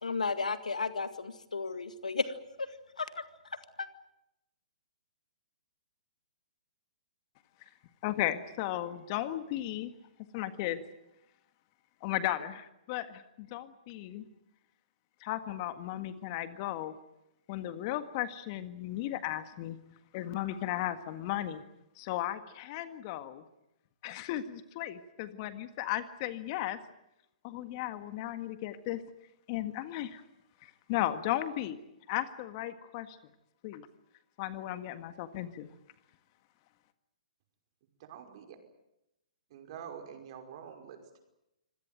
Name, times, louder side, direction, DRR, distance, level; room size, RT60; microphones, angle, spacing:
voice 1, 0.0-2.3 3.0-3.1 3.8-3.9, left 4 dB, 90° left, 11 dB, 2.0 m, -33 dB
voice 2, 8.0-9.9 10.3-10.8 12.0-14.3 15.2-17.0 17.5-19.8 20.1-21.6 22.0-23.4 24.0-26.8 27.4-29.0 29.5-30.2 30.6-31.8 32.1-33.2 33.6-33.9 34.4-35.7, left 13 dB, 40° left, 11 dB, 1.8 m, -35 dB
voice 3, 38.0-38.6 39.5-41.2, right 8 dB, 50° right, 5 dB, 5.3 m, -46 dB
25.5 x 17.5 x 9.2 m, 0.87 s
hypercardioid pair, 130°, 4 cm